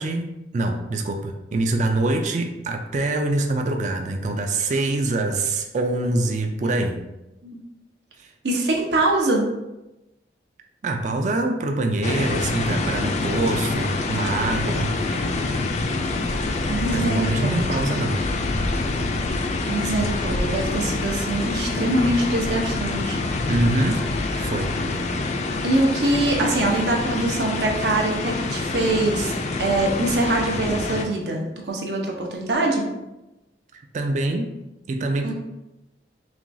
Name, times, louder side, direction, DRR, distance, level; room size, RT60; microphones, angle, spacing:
voice 1, 0.0-7.0 8.2-8.3 10.8-14.9 16.9-18.2 23.5-24.0 24.4-24.7 33.9-34.5 34.9-35.3, right 2 dB, 45° right, 4 dB, 0.3 m, -24 dB
voice 2, 8.4-9.5 16.7-17.7 19.7-23.2 25.6-29.3 29.6-32.9 35.2-35.3, right 2 dB, 75° right, 0 dB, 0.8 m, -23 dB
sound 1, 12.0-31.0, left 3 dB, 40° left, 0.3 m, -26 dB
5.8 x 2.3 x 2.6 m, 0.98 s
head